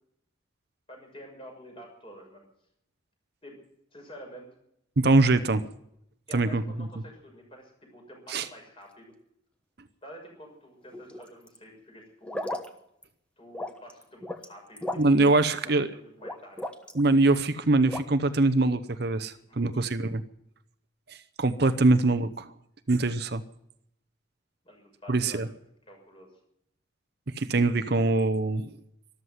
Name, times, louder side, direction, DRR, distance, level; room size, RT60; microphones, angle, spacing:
voice 1, 0.9-2.4 3.4-3.6 3.9-4.5 6.3-9.1 10.0-12.4 13.4-16.6 19.3-19.6 24.6-25.4 25.9-26.3, equal, 25° left, 1 dB, 6.4 m, -48 dB
voice 2, 5.0-5.7 6.3-6.9 8.3-8.5 15.0-15.9 16.9-20.2 21.1-22.5 22.9-23.4 25.1-25.5 27.4-28.7, right 2 dB, 55° right, 11 dB, 0.8 m, -23 dB
sound 1, 10.9-11.6 12.2-12.7 13.0-13.1 13.5-14.5 14.8-15.3 16.2-17.0 17.9-18.0, left 1 dB, 5° left, 1.2 m, -35 dB
13.5 x 13.0 x 7.9 m, 0.76 s
head